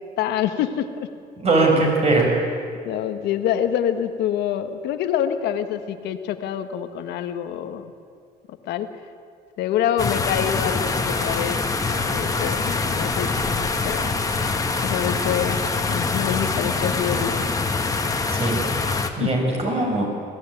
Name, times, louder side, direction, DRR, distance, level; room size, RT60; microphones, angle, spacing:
voice 1, 0.2-1.1 2.8-7.9 8.7-8.9 9.6-11.6 12.1-14.1 14.8-15.6 15.9-17.5 19.2-19.3, left 10 dB, 80° left, 8 dB, 1.5 m, -26 dB
voice 2, 1.4-2.3 18.3-18.6 19.2-20.0, right 2 dB, 40° right, 0 dB, 6.7 m, -20 dB
sound 1, 10.0-19.1, left 3 dB, 20° left, 1.9 m, -24 dB
21.5 x 16.5 x 9.2 m, 2.2 s
cardioid pair, 110°, 17 cm